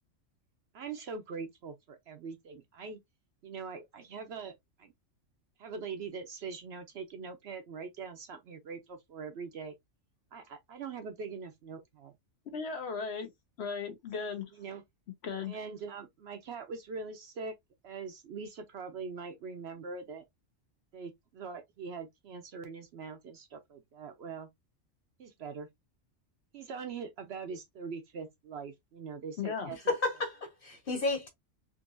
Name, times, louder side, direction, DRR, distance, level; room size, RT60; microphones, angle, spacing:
voice 1, 0.7-3.0 3.4-4.9 5.6-9.7 10.3-12.1 14.5-14.8 15.5-17.5 17.8-20.2 20.9-24.5 25.2-25.7 26.5-29.9, right 5 dB, 65° right, 0.8 m, -42 dB
voice 2, 12.5-13.3 13.6-14.5 15.2-15.6 29.4-29.7, left 5 dB, 60° left, 0.8 m, -36 dB
voice 3, 29.7-31.3, left 3 dB, 45° left, 1.4 m, -32 dB
3.7 x 2.7 x 2.4 m
omnidirectional pair, 1.3 m